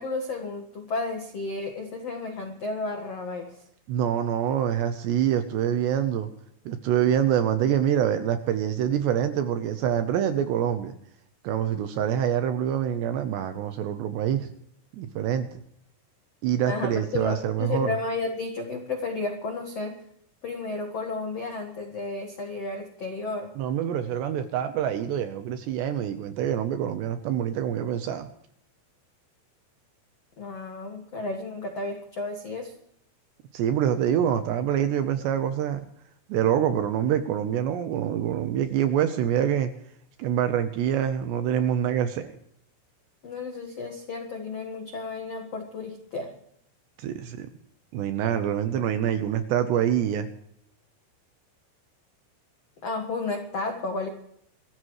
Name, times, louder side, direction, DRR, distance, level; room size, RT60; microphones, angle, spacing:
voice 1, 0.0-3.6 16.7-20.0 20.4-23.5 30.4-32.7 43.2-46.3 52.8-54.1, left 3 dB, 75° left, 3 dB, 1.4 m, -32 dB
voice 2, 3.9-6.3 6.7-10.9 11.4-14.5 15.0-15.6 16.4-17.9 23.6-28.3 33.5-35.8 36.3-39.7 40.2-42.3 47.0-47.5 47.9-50.3, right 9 dB, 75° right, 9 dB, 2.7 m, -25 dB
26.5 x 14.0 x 3.2 m, 0.71 s
omnidirectional pair, 5.8 m